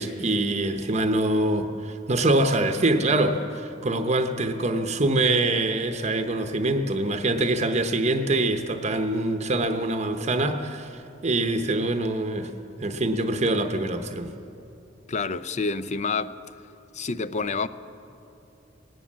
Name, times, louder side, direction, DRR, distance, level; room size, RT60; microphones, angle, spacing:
voice 1, 0.0-12.5 12.8-14.3, right 2 dB, 35° right, 0.8 m, -24 dB
voice 2, 15.1-16.4 16.9-17.7, left 4 dB, 40° left, 0.6 m, -28 dB
19.0 x 18.5 x 7.4 m
head